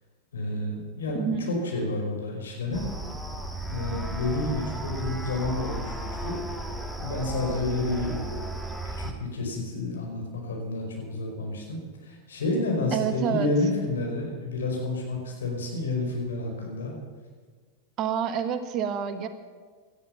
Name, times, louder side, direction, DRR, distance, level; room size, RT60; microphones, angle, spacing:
voice 1, 0.3-2.9 3.7-5.9 6.2-6.4 7.0-8.4 8.8-17.0, left 2 dB, 65° left, 0 dB, 5.1 m, -30 dB
voice 2, 1.1-1.5 12.9-13.5 18.0-19.3, right 8 dB, 35° right, 10 dB, 1.2 m, -28 dB
sound 1, 2.7-9.1, right 1 dB, ahead, 1.5 m, -34 dB
18.5 x 13.0 x 5.8 m, 1.5 s
figure-of-eight pair, 90°, 0 cm